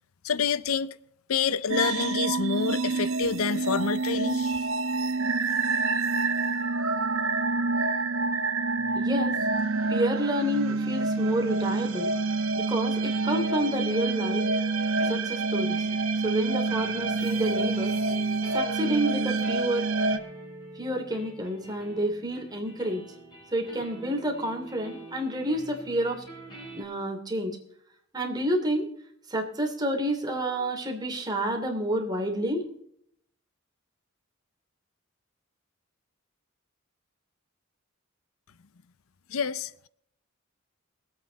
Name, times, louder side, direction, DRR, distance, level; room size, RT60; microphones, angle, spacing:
voice 1, 0.2-1.0 1.3-4.6 39.3-39.9, left 6 dB, 90° left, 0.6 m, -28 dB
sound 1, 1.7-20.2, right 3 dB, 75° right, 1.0 m, -27 dB
sound 2, 8.7-26.8, equal, 20° left, 6.3 m, -46 dB
voice 2, 8.9-9.4 9.9-12.1 12.5-14.4 15.1-15.9 16.2-17.9 18.5-19.9 20.8-23.0 23.5-26.2 26.7-27.6 28.1-28.9 29.3-32.6, right 1 dB, 20° right, 2.9 m, -29 dB
22.5 x 8.5 x 4.1 m
head